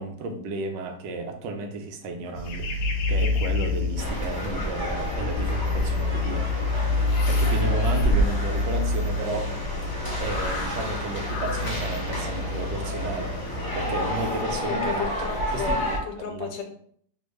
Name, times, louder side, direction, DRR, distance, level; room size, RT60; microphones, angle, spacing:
voice 1, 0.0-2.7 3.1-6.5 7.3-9.5 10.2-15.1 15.5-16.0 16.3-16.5, right 2 dB, 80° right, 5 dB, 1.2 m, -33 dB
sound 1, 2.3-14.4, left 2 dB, 70° left, 1.1 m, -27 dB
sound 2, 3.9-4.7 6.0-9.7, left 1 dB, 60° right, 1.0 m, -42 dB
sound 3, 4.0-16.0, equal, 30° left, 0.4 m, -31 dB
voice 2, 14.7-15.8 16.1-16.6, left 7 dB, 90° left, 3 dB, 1.3 m, -33 dB
3.5 x 2.5 x 3.1 m, 0.63 s
omnidirectional pair, 1.9 m